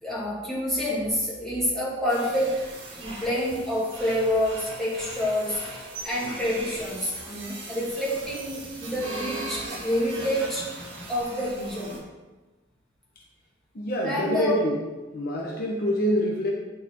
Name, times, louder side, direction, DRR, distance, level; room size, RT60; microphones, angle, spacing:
voice 1, 0.0-2.6 3.0-10.7 11.1-11.9 14.0-14.5, equal, ahead, -8 dB, 2.0 m, -28 dB
sound 1, 2.1-12.0, right 2 dB, 70° right, 2.0 m, -39 dB
voice 2, 13.7-14.9 15.1-16.5, equal, 50° left, -2 dB, 0.9 m, -26 dB
9.0 x 4.6 x 3.6 m, 1.2 s
head